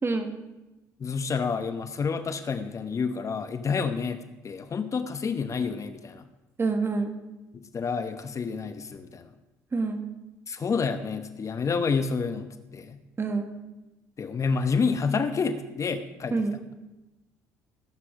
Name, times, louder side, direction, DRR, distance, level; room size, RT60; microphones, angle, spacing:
voice 1, 0.0-0.3 6.6-7.2 9.7-10.0 13.2-13.6 16.3-16.6, right 3 dB, 30° right, 6 dB, 2.0 m, -27 dB
voice 2, 1.0-6.3 7.5-9.3 10.5-12.5 12.7-13.0 14.2-16.4, left 5 dB, 40° left, 10 dB, 1.0 m, -29 dB
18.0 x 8.6 x 4.9 m, 1.0 s
hypercardioid pair, 65°, 8 cm